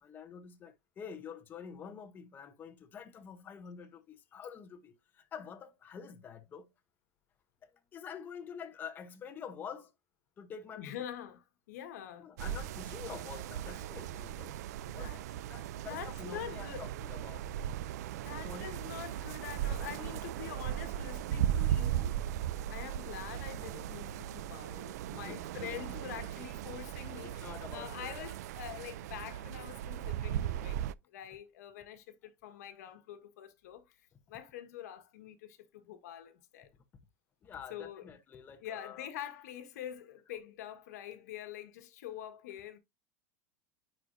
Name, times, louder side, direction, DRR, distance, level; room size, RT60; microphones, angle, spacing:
voice 1, 0.0-6.7 7.6-9.9 10.4-10.9 12.2-14.6 14.9-15.1 15.4-17.5 18.3-19.3 25.1-26.0 26.7-26.8 27.0-28.3 37.4-39.1, left 7 dB, 20° left, 0.8 m, -47 dB
voice 2, 10.7-12.3 14.8-15.2 15.8-16.8 18.1-22.2 22.7-34.0 34.3-36.7 37.7-38.1 38.6-42.8, left 10 dB, 85° left, 1.5 m, -45 dB
sound 1, 12.4-30.9, right 11 dB, 85° right, 0.4 m, -37 dB
9.4 x 4.4 x 2.6 m
supercardioid pair, 155°, 9 cm